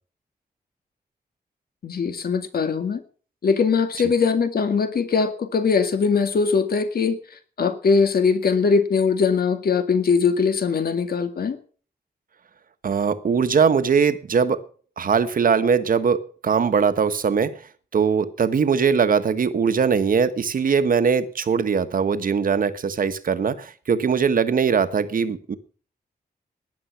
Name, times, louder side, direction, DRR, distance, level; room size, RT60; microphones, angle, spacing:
voice 1, 1.8-3.0 3.4-7.2 7.6-11.6, left 5 dB, 65° left, 8 dB, 2.2 m, -21 dB
voice 2, 12.8-14.6 15.0-17.6 17.9-25.6, right 6 dB, 55° right, 11 dB, 1.3 m, -21 dB
18.5 x 11.0 x 5.8 m, 0.42 s
wide cardioid pair, 180°, 17 cm